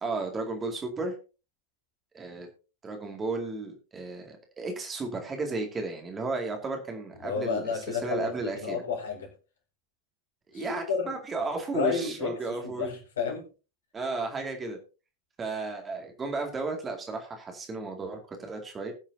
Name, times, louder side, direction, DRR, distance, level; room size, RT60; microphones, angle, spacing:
voice 1, 0.0-1.1 2.1-2.5 2.8-7.7 8.0-8.8 10.5-12.9 13.9-14.8 15.4-18.9, right 3 dB, 20° right, 2.3 m, -34 dB
voice 2, 7.2-9.3 10.5-11.2 11.7-13.5, left 6 dB, 65° left, 4.2 m, -31 dB
20.5 x 7.2 x 2.8 m
figure-of-eight pair, 90°, 0 cm